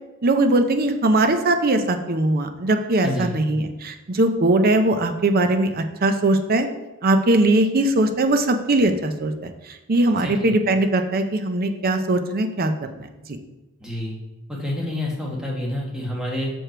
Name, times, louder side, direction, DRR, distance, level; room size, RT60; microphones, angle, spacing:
voice 1, 0.2-6.7 7.0-9.5 9.9-13.1, right 2 dB, 45° right, 7 dB, 0.6 m, -20 dB
voice 2, 3.0-3.4 10.1-10.5 13.8-14.2 14.5-16.5, left 1 dB, 5° right, -3 dB, 1.3 m, -28 dB
6.2 x 4.9 x 4.5 m, 1.1 s
head